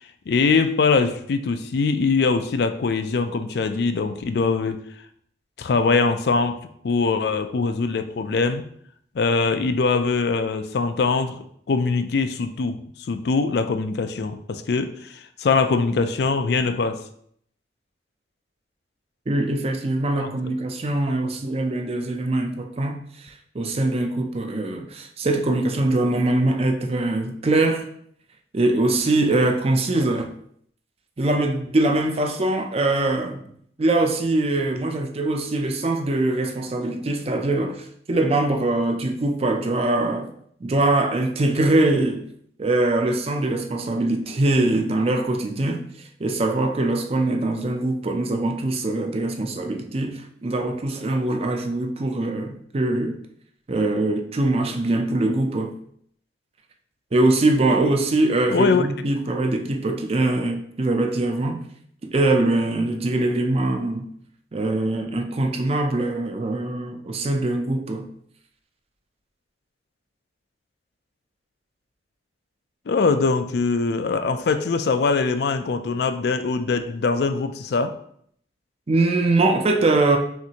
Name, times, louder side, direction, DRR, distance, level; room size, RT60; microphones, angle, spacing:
voice 1, 0.3-4.8 5.6-6.6 6.8-8.7 9.2-11.4 11.7-12.8 13.1-17.0 20.2-20.3 58.5-58.9 72.9-77.9, left 4 dB, 60° left, 0.4 m, -22 dB
voice 2, 19.3-27.9 28.5-30.3 31.2-33.4 33.8-40.3 40.6-42.2 42.6-45.8 46.2-53.2 53.7-55.8 57.1-61.6 62.0-64.1 64.5-68.1 78.9-80.2, right 2 dB, 35° right, 0.4 m, -22 dB
5.9 x 2.6 x 2.8 m
head